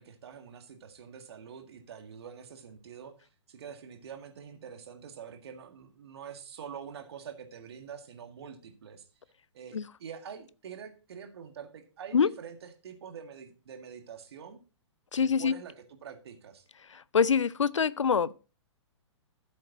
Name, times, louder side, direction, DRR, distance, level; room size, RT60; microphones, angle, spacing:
voice 1, 0.0-9.0 9.5-14.6 15.2-16.7, right 7 dB, 55° right, 1.9 m, -46 dB
voice 2, 15.1-15.6 16.9-18.5, left 6 dB, 75° left, 0.5 m, -25 dB
13.5 x 7.5 x 2.9 m
figure-of-eight pair, 120°, 16 cm